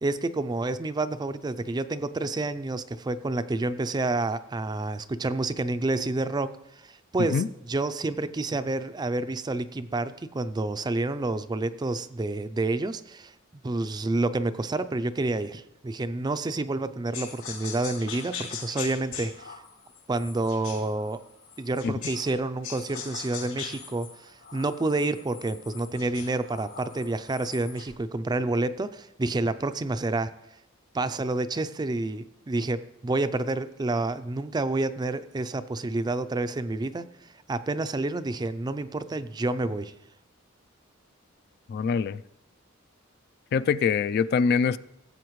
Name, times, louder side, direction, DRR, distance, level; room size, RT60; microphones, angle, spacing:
voice 1, 0.0-13.3 13.6-19.6 20.1-21.2 21.6-30.3 30.9-37.0 37.5-39.9, right 2 dB, 20° right, 0.4 m, -29 dB
sound 1, 17.1-22.4 22.6-27.9, left 7 dB, 75° left, 4.5 m, -41 dB
voice 2, 41.7-42.2 43.5-44.8, left 6 dB, 50° left, 0.3 m, -24 dB
17.5 x 7.9 x 3.1 m
head